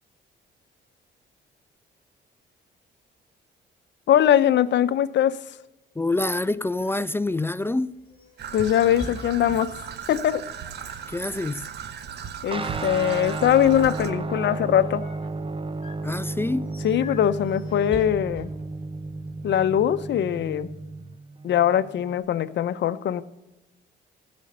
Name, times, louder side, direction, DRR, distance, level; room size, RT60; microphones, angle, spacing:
voice 1, 4.1-5.4 8.5-9.7 10.1-10.4 12.4-15.0 16.8-18.5 19.4-20.7 21.4-23.2, left 10 dB, 65° left, 0.7 m, -21 dB
voice 2, 6.0-8.0 11.1-11.7 16.0-16.7, left 2 dB, 10° left, 0.3 m, -26 dB
sound 1, 6.6-19.6, left 3 dB, 30° left, 4.5 m, -47 dB
Traffic noise roadway noise / Trickle dribble, 8.4-14.1, right 8 dB, 55° right, 0.9 m, -37 dB
Guitar, 12.5-22.2, right 3 dB, 25° right, 0.7 m, -33 dB
15.5 x 5.3 x 6.5 m
cardioid pair, 90°, 20 cm